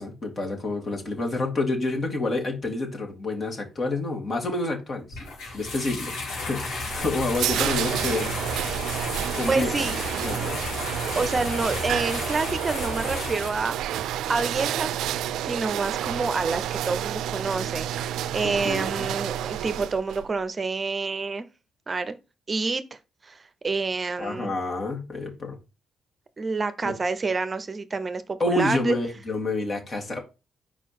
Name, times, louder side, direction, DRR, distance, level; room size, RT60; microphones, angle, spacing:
voice 1, 0.0-5.2 5.5-8.4 9.3-9.8 10.2-10.6 18.4-19.1 24.2-25.6 28.4-30.2, left 2 dB, 40° left, 2.4 m, -28 dB
sound 1, 5.1-13.5, left 3 dB, 85° left, 3.7 m, -33 dB
sound 2, 6.8-20.2, right 12 dB, 85° right, 0.3 m, -30 dB
voice 2, 9.5-10.3 11.0-14.0 14.3-14.9 15.4-21.5 21.9-22.2 22.5-23.4 23.6-24.5 26.4-28.9, right 4 dB, 30° right, 0.7 m, -28 dB
4.8 x 4.6 x 5.9 m
cardioid pair, 90°, 0 cm